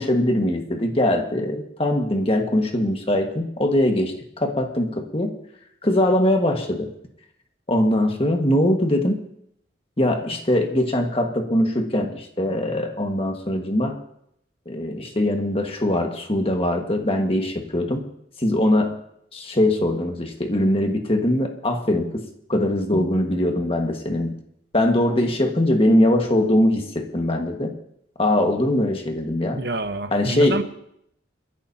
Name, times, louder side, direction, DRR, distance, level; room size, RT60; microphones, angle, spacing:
voice 1, 0.0-5.3 5.8-6.9 7.7-9.2 10.0-14.0 14.6-18.0 18.4-18.9 19.3-22.2 22.5-24.3 24.7-27.7 28.2-29.6 30.1-30.6, left 1 dB, 30° left, 3 dB, 1.6 m, -21 dB
voice 2, 29.5-30.6, right 2 dB, 60° right, 9 dB, 1.0 m, -27 dB
29.0 x 11.5 x 2.8 m, 0.75 s
head